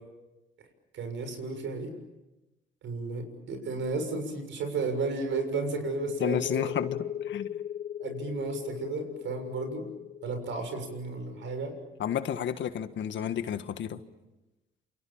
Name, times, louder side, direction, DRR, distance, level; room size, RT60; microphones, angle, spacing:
voice 1, 0.9-1.9 2.8-6.7 8.0-9.9 10.2-11.7, right 4 dB, 70° right, 7 dB, 7.0 m, -33 dB
sound 1, 5.2-12.7, left 10 dB, 45° left, 1.6 m, -38 dB
voice 2, 6.2-7.5 12.0-14.0, left 9 dB, 70° left, 10 dB, 1.7 m, -31 dB
28.5 x 27.5 x 7.3 m, 1.0 s
cardioid pair, 90°, 20 cm